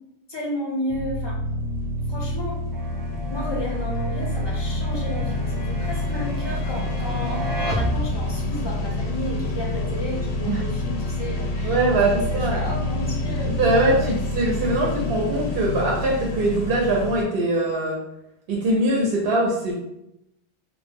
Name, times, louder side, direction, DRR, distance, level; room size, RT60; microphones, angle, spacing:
voice 1, 0.3-1.4 2.1-2.6 3.3-12.2 12.5-14.2, left 1 dB, 35° left, -3 dB, 0.5 m, -32 dB
sound 1, 0.9-17.2, left 1 dB, 85° left, 0.8 m, -27 dB
sound 2, 2.7-8.6, right 1 dB, 35° right, 0.7 m, -34 dB
voice 2, 11.6-12.6 13.6-18.0 18.5-19.7, right 2 dB, 70° right, -3 dB, 0.8 m, -22 dB
2.0 x 2.0 x 3.4 m, 0.83 s
omnidirectional pair, 1.1 m